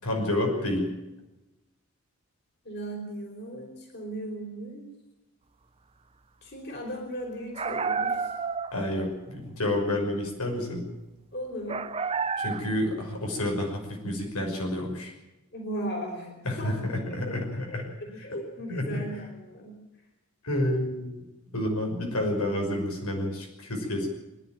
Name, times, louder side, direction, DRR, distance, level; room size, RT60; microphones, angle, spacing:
voice 1, 0.0-0.9 8.7-10.8 12.4-15.1 16.4-18.2 18.7-19.0 20.4-21.2 21.5-24.1, left 1 dB, 85° left, 1 dB, 6.0 m, -29 dB
voice 2, 2.6-4.9 6.4-8.3 11.3-11.8 15.5-17.4 18.2-19.7, right 1 dB, 50° left, 1 dB, 5.1 m, -37 dB
sound 1, 7.5-8.9 11.7-12.9, right 5 dB, 25° right, 0.6 m, -30 dB
25.0 x 11.5 x 9.2 m, 0.99 s
head